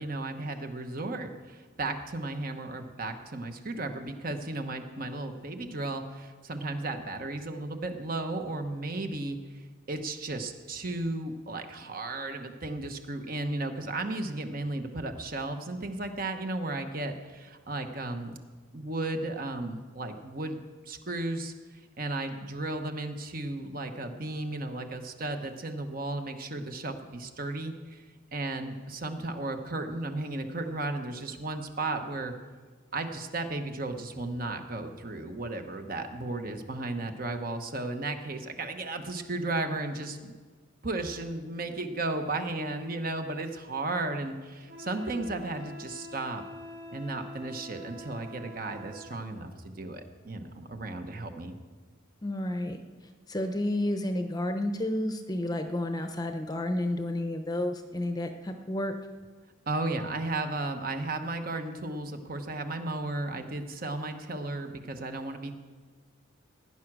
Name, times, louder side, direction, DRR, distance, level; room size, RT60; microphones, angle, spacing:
voice 1, 0.0-9.4 9.9-18.3 18.7-20.6 20.9-21.5 22.0-28.0 28.3-32.3 32.9-40.3 40.8-46.4 46.9-51.5 59.7-65.5, right 2 dB, 45° right, 6 dB, 1.1 m, -34 dB
Wind instrument woodwind instrument, 44.7-49.2, left 1 dB, 70° right, 5.5 m, -45 dB
voice 2, 52.2-52.8 53.3-58.9, left 1 dB, 20° left, 6 dB, 0.8 m, -31 dB
16.5 x 9.8 x 6.2 m, 1.4 s
head